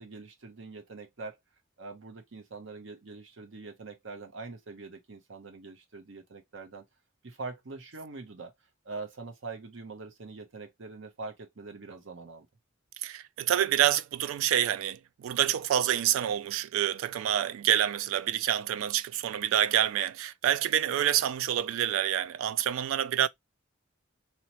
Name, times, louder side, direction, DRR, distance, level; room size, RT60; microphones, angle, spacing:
voice 1, 0.0-1.4 1.8-6.8 7.2-8.5 8.8-12.5, right 3 dB, 65° right, 0.7 m, -43 dB
voice 2, 13.0-23.3, right 11 dB, 85° right, 0.3 m, -27 dB
2.9 x 2.0 x 2.9 m
head